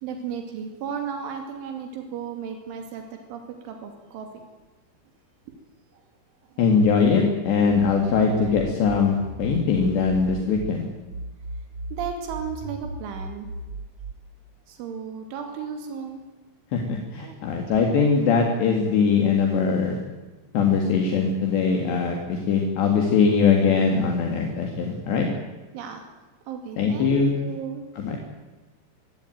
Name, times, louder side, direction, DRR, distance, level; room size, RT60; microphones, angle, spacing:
voice 1, 0.0-4.3 11.9-13.5 14.7-16.2 17.2-17.4 25.7-26.0 26.5-27.9, right 7 dB, 90° right, 4 dB, 4.9 m, -34 dB
voice 2, 6.6-10.8 16.7-20.0 20.5-25.3 26.8-27.3 28.0-28.2, left 5 dB, 70° left, 2 dB, 4.4 m, -21 dB
sound 1, 7.7-10.7 11.1-14.1, right 2 dB, 50° right, 1.8 m, -36 dB
25.0 x 16.0 x 9.2 m, 1.2 s
omnidirectional pair, 5.3 m